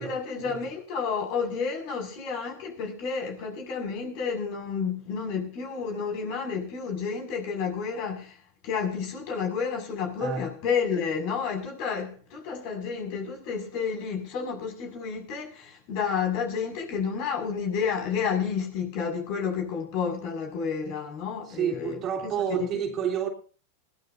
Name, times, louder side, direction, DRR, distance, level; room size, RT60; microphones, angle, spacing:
voice 1, 0.0-8.4 8.6-22.3 22.6-22.7, left 6 dB, 55° left, 6.1 m, -30 dB
voice 2, 21.5-23.3, right 8 dB, 40° right, 3.2 m, -29 dB
21.0 x 15.0 x 2.7 m
hypercardioid pair, 105°, 0 cm